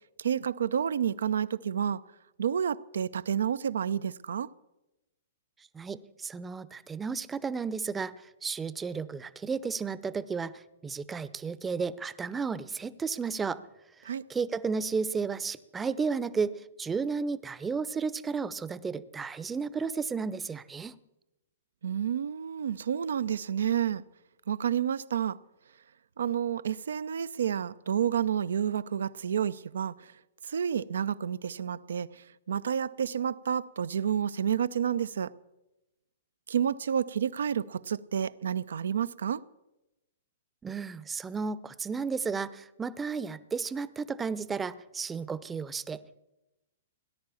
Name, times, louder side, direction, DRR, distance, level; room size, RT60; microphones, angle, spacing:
voice 1, 0.2-2.0 2.4-4.5 14.0-14.2 21.8-24.0 24.5-25.4 26.2-30.1 30.4-35.3 36.5-39.4, right 8 dB, 75° right, 0.5 m, -30 dB
voice 2, 5.7-8.1 8.4-13.6 14.3-16.5 16.8-20.9 40.6-46.2, right 5 dB, 15° right, 0.7 m, -33 dB
18.5 x 10.5 x 7.0 m
hypercardioid pair, 115°, 0 cm